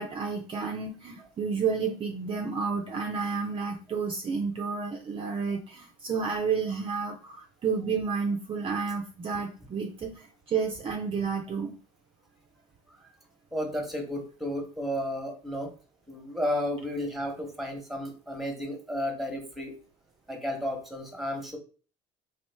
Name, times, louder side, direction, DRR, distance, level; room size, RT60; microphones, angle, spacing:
voice 1, 0.0-11.8, right 5 dB, 30° right, 3 dB, 0.5 m, -31 dB
voice 2, 13.5-15.7 16.1-19.7 20.3-21.6, equal, ahead, 3 dB, 1.1 m, -33 dB
3.1 x 2.3 x 3.4 m, 0.38 s
hypercardioid pair, 75°, 17 cm